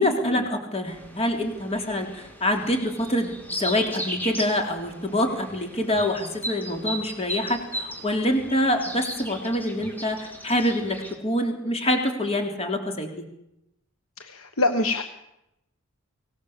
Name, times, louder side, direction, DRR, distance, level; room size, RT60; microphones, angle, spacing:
voice 1, 0.0-13.2, left 1 dB, 30° left, 3 dB, 3.3 m, -26 dB
sound 1, 0.9-11.1, equal, 10° left, 3.4 m, -36 dB
voice 2, 14.2-15.0, left 2 dB, 85° left, 7 dB, 1.4 m, -25 dB
25.0 x 19.0 x 7.3 m, 0.86 s
head